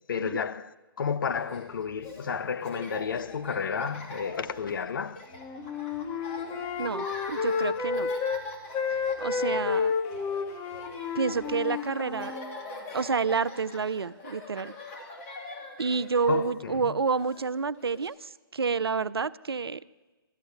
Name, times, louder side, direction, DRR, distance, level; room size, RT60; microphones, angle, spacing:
voice 1, 0.1-5.2 12.0-12.1 16.3-16.9, left 6 dB, 60° left, 0.7 m, -32 dB
Laughter, 1.3-18.1, left 2 dB, 35° left, 2.6 m, -44 dB
Wind instrument woodwind instrument, 5.3-8.4 8.7-12.5, left 5 dB, 20° left, 0.9 m, -31 dB
voice 2, 6.8-8.1 9.2-9.9 11.1-12.3 12.9-14.7 15.8-19.8, right 5 dB, 85° right, 0.5 m, -29 dB
13.0 x 8.0 x 9.5 m
figure-of-eight pair, 140°, 12 cm